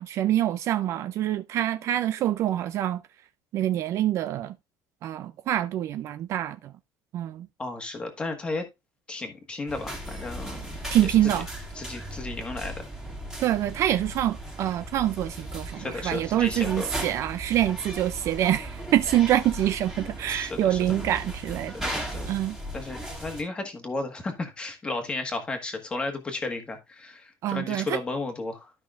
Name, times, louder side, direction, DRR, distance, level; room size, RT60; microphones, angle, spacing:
voice 1, 0.0-3.0 3.5-4.6 5.0-6.7 7.1-7.5 10.9-11.5 13.4-22.6 27.4-28.0, right 12 dB, 40° right, 0.4 m, -26 dB
voice 2, 7.6-8.6 9.1-10.7 11.0-11.3 11.7-13.1 15.8-16.9 20.3-20.8 21.7-22.4 22.7-28.7, left 3 dB, 15° left, 1.4 m, -34 dB
sound 1, 9.7-23.4, right 1 dB, 5° right, 2.2 m, -37 dB
12.5 x 5.6 x 2.4 m
cardioid pair, 180°, 8 cm